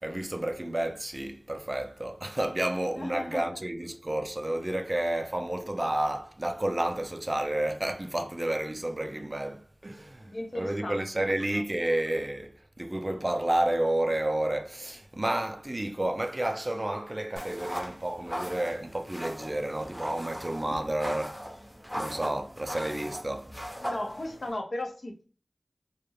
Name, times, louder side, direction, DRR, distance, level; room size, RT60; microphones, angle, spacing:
voice 1, 0.0-21.4 21.9-23.5, right 1 dB, 30° right, 0.3 m, -31 dB
voice 2, 3.0-3.6 10.3-11.0 11.5-11.9 23.8-25.2, left 1 dB, 65° left, 0.5 m, -36 dB
sound 1, 17.4-24.5, equal, 10° left, 0.7 m, -39 dB
2.3 x 2.0 x 3.1 m
wide cardioid pair, 55°, 0 cm